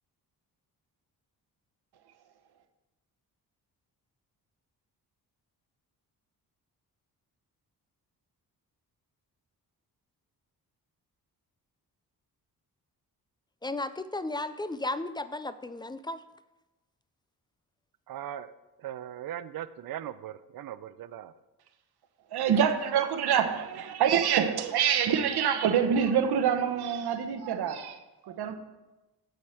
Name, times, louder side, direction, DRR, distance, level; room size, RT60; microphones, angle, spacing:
voice 1, 13.6-16.2, left 2 dB, 15° left, 0.3 m, -34 dB
voice 2, 18.1-18.5 18.8-21.3, right 11 dB, 60° right, 0.5 m, -39 dB
voice 3, 22.3-28.0 28.2-28.5, right 8 dB, 80° right, 1.0 m, -26 dB
8.2 x 7.9 x 4.3 m
cardioid pair, 100°, 39 cm